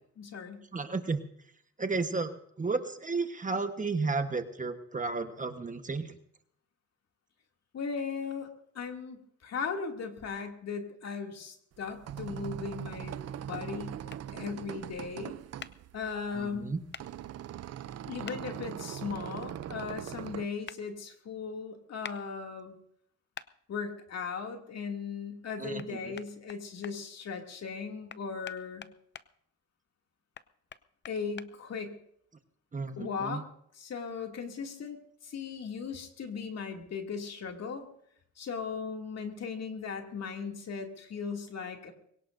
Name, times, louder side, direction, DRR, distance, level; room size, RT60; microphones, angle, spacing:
voice 1, 0.2-0.6 7.7-8.5 8.7-14.0 14.3-15.3 15.9-16.7 18.1-22.8 23.7-28.9 31.1-32.0 33.0-33.5 33.7-35.0 35.2-37.9 38.4-41.9, left 5 dB, 55° left, 3 dB, 2.7 m, -37 dB
voice 2, 0.7-1.2 1.8-2.3 2.6-6.2 16.3-16.8 25.6-26.1 32.7-33.4, right 4 dB, 25° right, 8 dB, 1.3 m, -33 dB
sound 1, 11.7-20.5, right 10 dB, 55° right, 0.6 m, -41 dB
sound 2, 14.1-14.2 15.6-15.7 16.9-17.1 18.2-18.4 20.7-20.8 22.0-22.2 23.3-23.5 25.8-25.9 26.2-26.9 28.1-29.3 30.3-31.5, left 7 dB, 35° left, 0.7 m, -44 dB
22.5 x 18.0 x 2.7 m, 0.68 s
cardioid pair, 90°, 30 cm